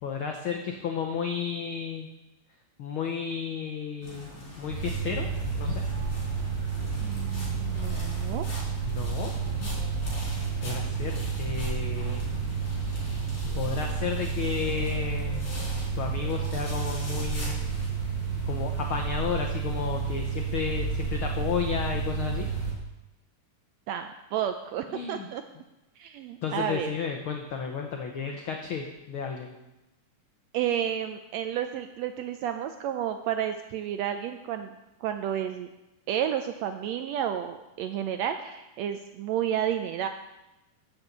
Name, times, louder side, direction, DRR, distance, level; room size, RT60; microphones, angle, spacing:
voice 1, 0.0-2.1 2.8-4.3 4.6-5.3 5.6-5.8 8.8-9.3 9.6-9.8 10.6-12.3 13.5-15.4 16.0-17.6 18.4-22.5 24.9-25.3 26.4-29.5, left 6 dB, 85° left, 3 dB, 1.1 m, -32 dB
sound 1, 4.0-17.9, left 1 dB, 40° left, 5.1 m, -42 dB
sound 2, 4.7-22.7, right 5 dB, 15° left, 3.6 m, -31 dB
voice 2, 7.0-8.5 23.9-25.4 26.0-26.9 30.5-34.7 35.0-35.7 36.1-40.1, right 10 dB, 85° right, 7 dB, 1.5 m, -31 dB
13.0 x 5.4 x 7.9 m, 0.99 s
omnidirectional pair, 3.7 m